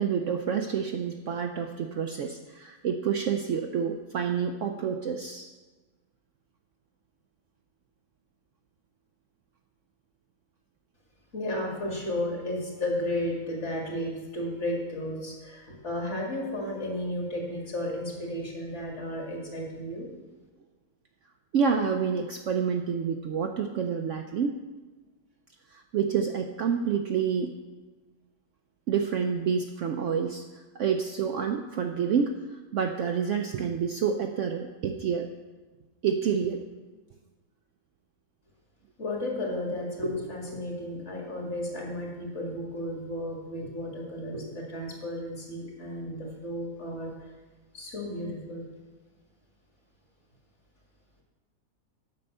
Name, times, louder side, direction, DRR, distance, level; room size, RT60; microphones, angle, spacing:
voice 1, 0.0-5.5 21.5-24.6 25.7-27.5 28.9-30.4 30.7-35.3 36.0-36.6, right 6 dB, 70° right, 4 dB, 0.8 m, -28 dB
voice 2, 11.3-20.1 39.0-47.3 47.7-48.7, left 1 dB, 45° left, -2 dB, 2.4 m, -33 dB
9.6 x 5.5 x 6.5 m, 1.3 s
omnidirectional pair, 1.7 m